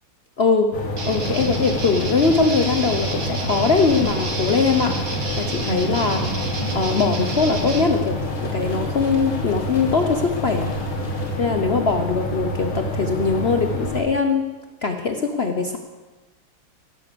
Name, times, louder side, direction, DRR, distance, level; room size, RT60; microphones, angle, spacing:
voice 1, 0.4-0.7 1.0-5.0 5.4-6.2 6.7-10.8 11.4-14.5 14.8-15.8, left 4 dB, 65° left, 5 dB, 0.6 m, -21 dB
sound 1, 0.7-14.0, equal, 85° left, 2.6 m, -28 dB
sound 2, 1.0-7.8, right 3 dB, 45° right, 2.1 m, -29 dB
sound 3, 1.1-11.4, left 3 dB, 35° left, 3.5 m, -38 dB
17.0 x 8.6 x 6.8 m, 1.2 s
omnidirectional pair, 2.2 m